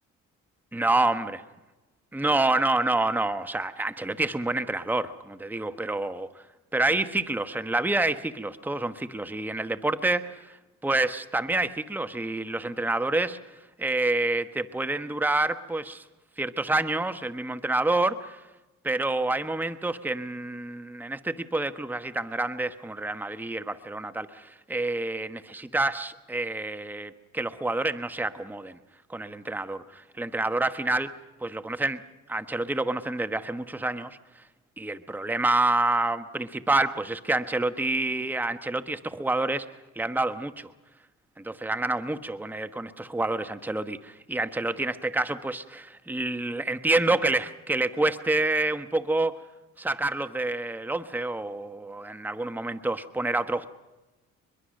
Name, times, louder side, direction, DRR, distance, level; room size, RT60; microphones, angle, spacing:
voice 1, 0.7-1.4 2.1-6.4 6.7-10.6 10.8-13.4 13.8-16.0 16.4-18.4 18.8-28.8 29.1-31.1 31.4-32.0 32.3-34.2 34.8-39.6 40.0-40.7 41.4-49.4 49.8-53.8, right 2 dB, 5° right, 11 dB, 1.1 m, -28 dB
24.0 x 22.0 x 6.5 m, 1.1 s
supercardioid pair, 75°, 33 cm